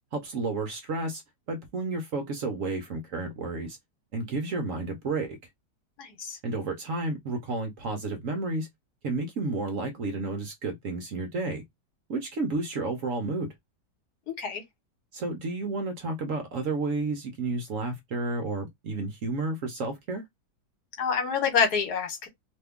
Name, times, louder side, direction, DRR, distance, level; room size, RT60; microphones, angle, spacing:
voice 1, 0.1-1.2 1.5-3.8 4.1-5.4 6.4-8.7 9.0-11.6 12.1-13.5 15.1-20.2, right 3 dB, 60° right, 0.9 m, -31 dB
voice 2, 6.0-6.4 14.4-14.6 21.0-22.3, left 6 dB, 65° left, 1.5 m, -27 dB
3.0 x 2.2 x 3.5 m
omnidirectional pair, 1.9 m